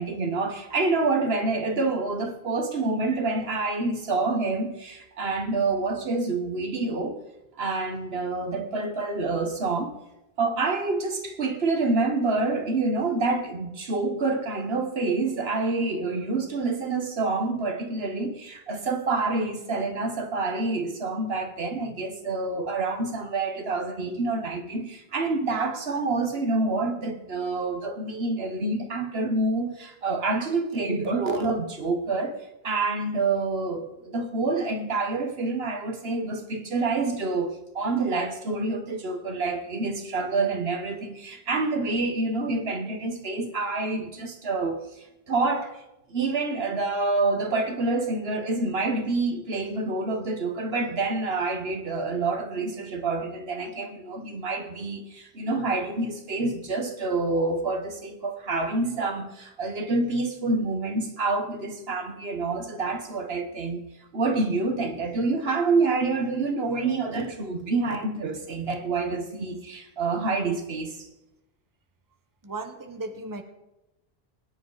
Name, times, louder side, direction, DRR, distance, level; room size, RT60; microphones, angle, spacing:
voice 1, 0.0-7.2 7.6-9.9 10.4-32.4 32.6-44.8 45.3-45.8 46.1-63.8 64.1-71.1, right 3 dB, 70° right, 1.5 m, -27 dB
voice 2, 72.4-73.4, right 2 dB, 20° right, 1.0 m, -36 dB
21.0 x 9.9 x 4.0 m
omnidirectional pair, 1.1 m